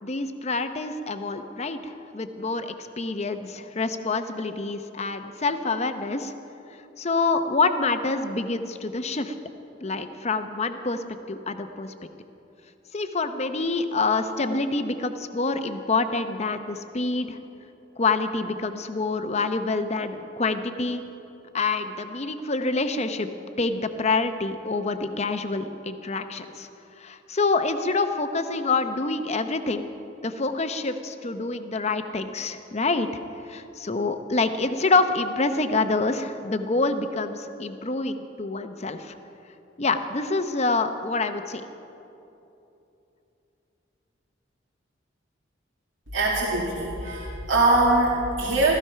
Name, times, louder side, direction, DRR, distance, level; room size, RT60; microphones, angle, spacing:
voice 1, 0.0-6.3 7.0-9.3 9.8-11.9 12.9-17.4 18.0-21.0 21.5-23.3 23.6-26.7 27.0-29.9 30.2-33.1 33.5-39.1 39.8-41.6, left 3 dB, 35° left, 9 dB, 0.7 m, -26 dB
voice 2, 46.1-48.8, right 2 dB, 80° right, -6 dB, 2.2 m, -22 dB
15.0 x 14.0 x 5.7 m, 2.9 s
head